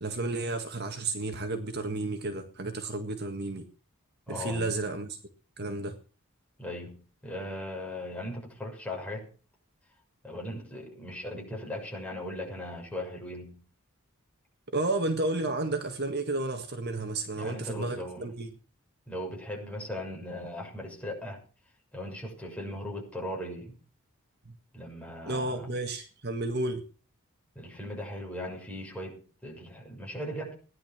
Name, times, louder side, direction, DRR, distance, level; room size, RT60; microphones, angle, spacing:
voice 1, 0.0-3.7 4.3-5.2 5.6-6.0 14.7-18.5 25.3-26.8, right 2 dB, 50° right, 1.8 m, -32 dB
voice 2, 4.3-4.7 6.6-9.3 10.2-13.6 17.3-18.3 19.1-21.4 21.9-23.8 24.7-25.7 27.5-30.5, left 1 dB, 5° left, 6.6 m, -38 dB
18.0 x 11.0 x 6.1 m
head